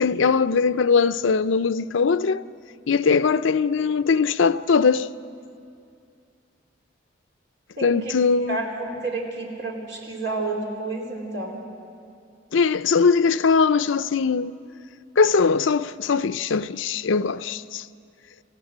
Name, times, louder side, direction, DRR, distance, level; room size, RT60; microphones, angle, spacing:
voice 1, 0.0-2.4 2.9-5.1 7.8-8.6 12.5-14.5 15.2-17.8, left 5 dB, 85° left, 0.5 m, -20 dB
voice 2, 7.8-8.1 8.5-11.6, right 2 dB, 70° right, 4.4 m, -30 dB
27.0 x 15.5 x 9.4 m
head